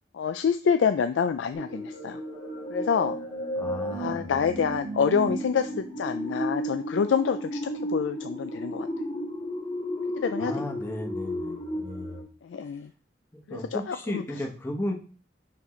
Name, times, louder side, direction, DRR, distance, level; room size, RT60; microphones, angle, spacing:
voice 1, 0.1-2.2 2.7-3.2 3.9-8.9 10.2-10.6 11.5-11.6 12.4-12.9 13.5-14.2, left 6 dB, 80° left, 9 dB, 0.4 m, -27 dB
sound 1, 1.5-12.2, equal, 30° left, 1.8 m, -33 dB
voice 2, 3.6-4.5 10.4-12.2 13.5-14.9, left 1 dB, 15° left, 1 dB, 1.1 m, -35 dB
5.9 x 5.5 x 3.2 m, 0.37 s
head